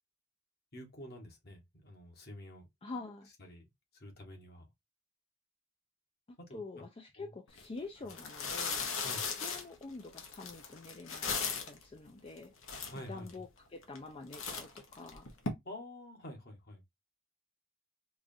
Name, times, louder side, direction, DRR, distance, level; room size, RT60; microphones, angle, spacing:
voice 1, 0.7-2.7 3.4-4.7 6.4-6.6 7.2-7.3 9.0-9.3 12.9-13.3 15.6-16.8, left 1 dB, 50° left, 1.4 m, -48 dB
voice 2, 2.8-3.3 6.5-8.9 9.4-12.5 13.1-15.3, left 3 dB, 30° left, 0.4 m, -46 dB
sound 1, 7.5-7.6 8.1-11.8 12.4-12.5 12.6-13.3 13.8-14.1 14.3-15.5, left 5 dB, 85° left, 1.0 m, -37 dB
4.7 x 2.5 x 2.6 m
head